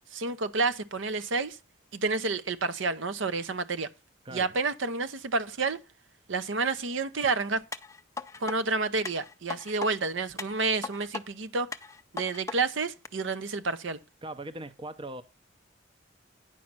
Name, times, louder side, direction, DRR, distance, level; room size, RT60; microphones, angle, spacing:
voice 1, 0.1-1.6 1.9-3.9 4.3-5.8 6.3-7.6 8.4-11.7 12.1-14.0, right 3 dB, 70° right, 0.7 m, -29 dB
sound 1, 7.7-8.6 9.0-9.9 10.4-11.2 11.7-12.6 13.0-13.1, left 4 dB, 15° left, 0.5 m, -38 dB
voice 2, 14.2-15.2, right 1 dB, 25° right, 0.6 m, -40 dB
10.0 x 5.3 x 5.9 m
head